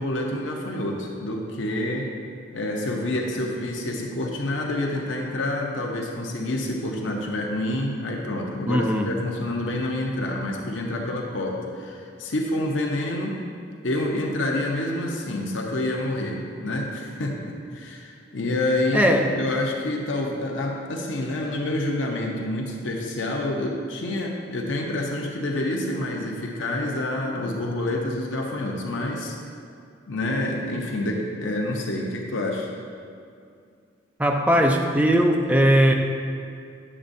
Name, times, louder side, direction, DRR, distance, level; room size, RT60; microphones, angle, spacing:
voice 1, 0.0-2.1 2.5-13.4 13.8-19.1 19.4-29.4 30.1-32.7, left 1 dB, 85° left, 0 dB, 0.8 m, -28 dB
voice 2, 8.7-9.1 18.9-19.4 34.2-35.9, equal, 5° right, 2 dB, 0.4 m, -19 dB
9.9 x 7.2 x 2.6 m, 2.3 s
head